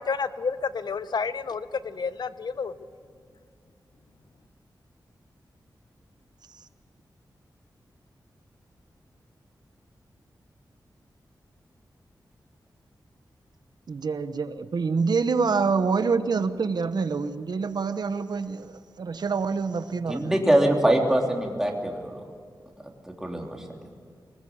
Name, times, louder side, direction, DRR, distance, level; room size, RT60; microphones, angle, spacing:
voice 1, 0.0-2.7, left 5 dB, 65° left, 13 dB, 0.9 m, -30 dB
voice 2, 13.9-20.3, right 5 dB, 65° right, 11 dB, 1.1 m, -26 dB
voice 3, 20.1-22.1 23.1-23.6, right 1 dB, 5° right, 0 dB, 3.3 m, -23 dB
24.5 x 20.0 x 8.7 m, 2.1 s
wide cardioid pair, 145°, 8 cm